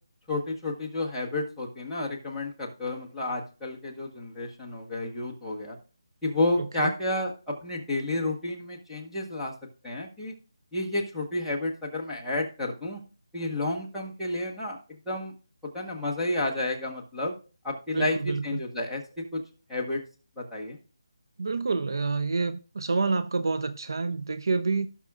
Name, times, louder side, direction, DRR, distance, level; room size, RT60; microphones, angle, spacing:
voice 1, 0.3-5.8 6.2-9.5 9.8-10.3 10.7-13.0 13.3-14.8 15.1-15.3 15.7-17.3 17.6-19.4 19.7-20.0 20.4-20.8, left 2 dB, ahead, 1.2 m, -31 dB
voice 2, 6.6-6.9 17.9-18.6 21.4-24.9, right 4 dB, 55° right, 0.5 m, -28 dB
17.0 x 5.9 x 2.3 m
figure-of-eight pair, 175°, 3 cm